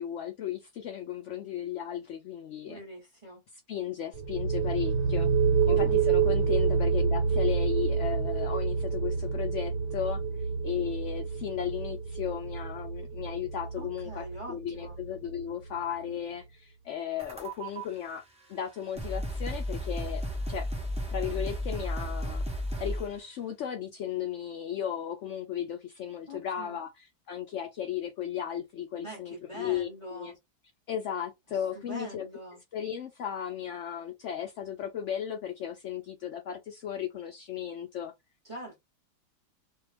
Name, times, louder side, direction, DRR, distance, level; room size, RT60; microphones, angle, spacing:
voice 1, 0.0-2.8 3.7-5.3 5.7-10.2 10.6-18.2 18.5-20.2 20.5-20.7 21.1-22.4 22.8-30.4 30.9-32.3 32.7-38.1, left 9 dB, 85° left, 0.6 m, -35 dB
voice 2, 2.7-3.4 5.6-6.4 13.8-15.0 26.3-26.8 28.9-30.4 31.5-32.6 38.4-38.8, right 2 dB, 25° right, 0.8 m, -43 dB
sound 1, 4.1-15.7, right 6 dB, 80° right, 1.3 m, -28 dB
sound 2, 17.2-17.8 18.6-18.7 19.0-23.2, equal, 5° right, 0.5 m, -33 dB
2.7 x 2.4 x 3.3 m
omnidirectional pair, 1.8 m